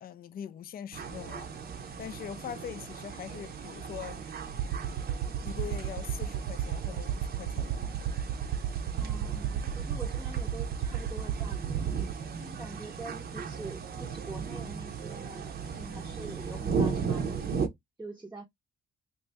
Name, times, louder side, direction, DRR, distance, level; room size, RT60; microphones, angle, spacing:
voice 1, 0.0-1.5 2.0-4.2 5.4-8.1, left 9 dB, 50° left, 0.5 m, -42 dB
sound 1, 0.9-17.7, right 5 dB, 50° right, 0.7 m, -37 dB
sound 2, 4.5-12.1, right 9 dB, 80° right, 0.4 m, -32 dB
voice 2, 9.0-11.9 12.4-17.7 18.0-18.5, right 2 dB, 10° right, 0.7 m, -45 dB
2.7 x 2.6 x 3.3 m
cardioid pair, 90°, 20 cm